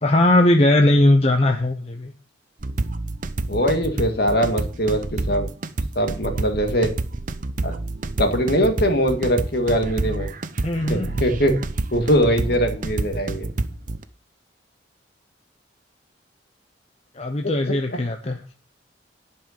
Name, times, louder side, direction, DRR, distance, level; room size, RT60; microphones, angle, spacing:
voice 1, 0.0-2.1 10.6-11.1 17.2-18.4, left 1 dB, 35° left, 4 dB, 0.8 m, -18 dB
sound 1, 2.6-14.0, right 2 dB, 45° right, 0.7 m, -28 dB
voice 2, 3.5-5.5 6.0-6.9 7.6-7.8 8.2-10.3 10.9-11.6 11.9-13.5 17.4-17.5 17.9-18.0, equal, 55° left, 5 dB, 2.0 m, -21 dB
10.5 x 5.7 x 6.6 m, 0.40 s
head